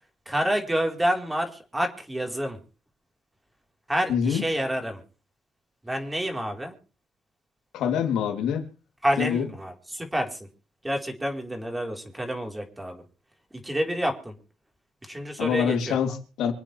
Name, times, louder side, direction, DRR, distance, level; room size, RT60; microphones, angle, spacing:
voice 1, 0.3-2.6 3.9-5.0 5.8-6.7 9.0-10.4 10.8-13.0 13.6-14.3 15.1-16.0, equal, 10° right, 4.0 m, -28 dB
voice 2, 4.1-4.4 7.7-8.7 9.2-9.4 15.4-16.5, left 8 dB, 85° left, 3.0 m, -25 dB
26.5 x 8.9 x 3.4 m
cardioid pair, 90°, 0 cm